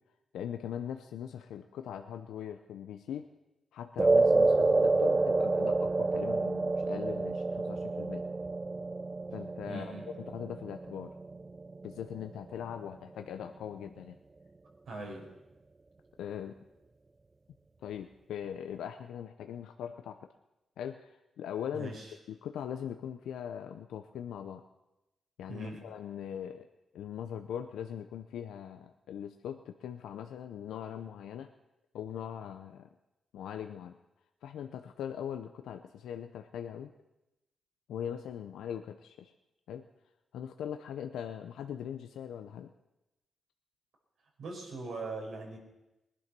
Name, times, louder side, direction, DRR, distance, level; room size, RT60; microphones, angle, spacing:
voice 1, 0.3-3.3 3.7-8.2 9.3-11.1 11.8-14.2 16.2-16.6 17.8-20.3 20.8-21.9 22.3-24.6 25.4-26.7 26.9-31.5 31.9-32.9 33.3-34.0 34.4-36.9 37.9-39.3 39.7-39.8 40.3-42.7, left 9 dB, 85° left, 6 dB, 0.7 m, -40 dB
sound 1, 4.0-12.5, right 3 dB, 30° right, 0.5 m, -28 dB
voice 2, 9.7-10.0 14.9-15.3 21.7-22.1 25.5-25.9 44.4-45.6, right 2 dB, 80° right, -2 dB, 5.6 m, -41 dB
20.0 x 11.0 x 6.1 m, 0.97 s
cardioid pair, 60°, 0 cm